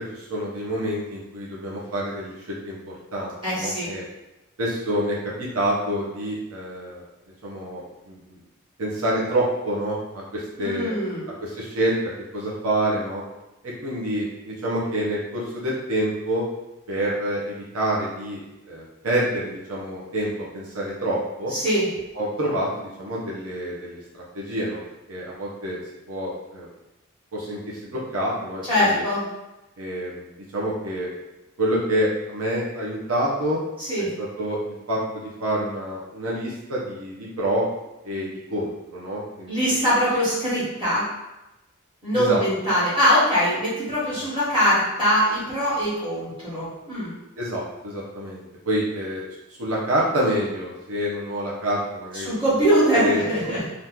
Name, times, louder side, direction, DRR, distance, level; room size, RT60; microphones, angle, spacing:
voice 1, 0.0-4.0 4.6-7.0 7.4-8.4 8.8-10.9 11.4-12.0 12.3-13.2 13.6-16.4 16.9-18.4 18.7-21.5 22.1-24.8 25.1-25.8 26.1-26.7 27.3-29.0 29.8-31.1 31.6-33.6 34.2-37.6 38.0-39.6 42.1-42.4 47.4-49.2 49.5-52.3 52.9-53.6, right 1 dB, 85° right, -5 dB, 0.8 m, -27 dB
voice 2, 3.4-3.9 10.6-11.2 21.5-21.9 28.7-29.2 33.8-34.1 39.5-41.1 42.0-47.1 52.1-53.6, equal, 25° right, -10 dB, 1.2 m, -22 dB
2.9 x 2.5 x 3.6 m, 0.99 s
head